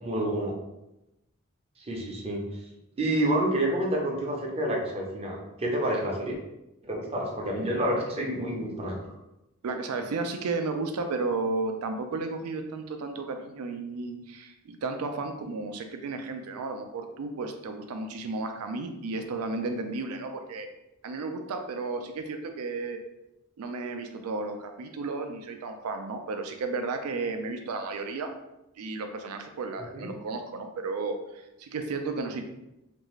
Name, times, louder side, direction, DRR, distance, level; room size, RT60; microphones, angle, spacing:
voice 1, 0.0-0.5 1.8-2.4 3.0-6.4 6.8-9.0 29.9-30.1, right 1 dB, 25° right, -1 dB, 0.6 m, -28 dB
voice 2, 9.6-20.7 21.0-23.0 23.6-28.3 28.8-32.4, right 3 dB, 75° right, 6 dB, 0.4 m, -33 dB
2.6 x 2.3 x 3.0 m, 0.91 s
head